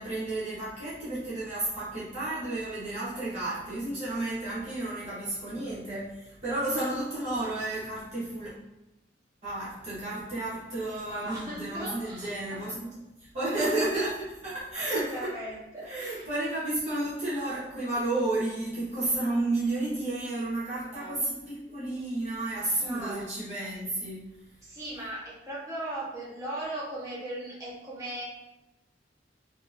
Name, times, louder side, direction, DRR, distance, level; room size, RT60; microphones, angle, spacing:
voice 1, 0.0-8.5 9.4-12.9 13.2-15.3 15.8-24.3, right 2 dB, 40° right, -10 dB, 1.2 m, -32 dB
voice 2, 10.9-12.6 13.5-13.7 14.9-16.2 20.9-21.2 22.8-23.2 24.6-28.2, right 1 dB, 20° right, -8 dB, 1.4 m, -38 dB
4.5 x 3.0 x 2.7 m, 0.97 s
head